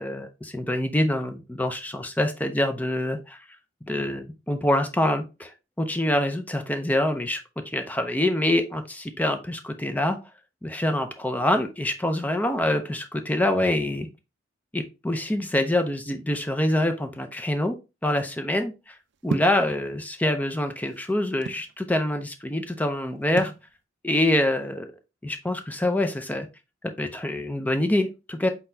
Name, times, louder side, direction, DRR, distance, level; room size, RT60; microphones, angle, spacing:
voice 1, 0.0-3.4 3.9-5.5 5.8-10.2 10.6-14.1 14.7-17.8 18.0-19.0 19.2-23.5 24.0-24.9 25.2-26.5 27.0-28.5, left 1 dB, 10° left, 7 dB, 0.5 m, -25 dB
sound 1, 19.3-19.6 20.5-21.7 23.4-23.7, right 4 dB, 60° right, 0.4 m, -31 dB
4.3 x 4.0 x 2.6 m, 0.27 s
head